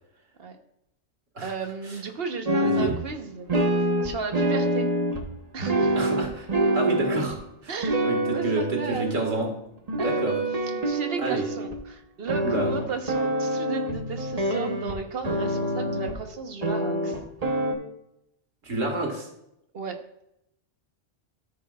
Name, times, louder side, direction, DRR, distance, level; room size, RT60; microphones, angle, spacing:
voice 1, 1.4-4.9 5.5-6.0 7.7-9.3 10.0-10.1 10.6-17.2 19.7-20.0, right 5 dB, 55° right, 5 dB, 1.2 m, -34 dB
sound 1, 2.5-3.0 3.5-5.3 5.6-7.3 7.8-9.5 9.9-11.8 12.3-15.0 15.2-16.1 16.6-17.7, right 1 dB, 35° right, 1.2 m, -26 dB
voice 2, 2.6-2.9 6.0-6.5 6.7-7.4 7.6-7.7 8.0-8.6 8.9-9.5 9.9-10.3 11.2-11.5 12.4-12.7 18.6-19.3, right 2 dB, 85° right, 1 dB, 2.3 m, -29 dB
13.5 x 6.6 x 2.4 m, 0.80 s
omnidirectional pair, 1.3 m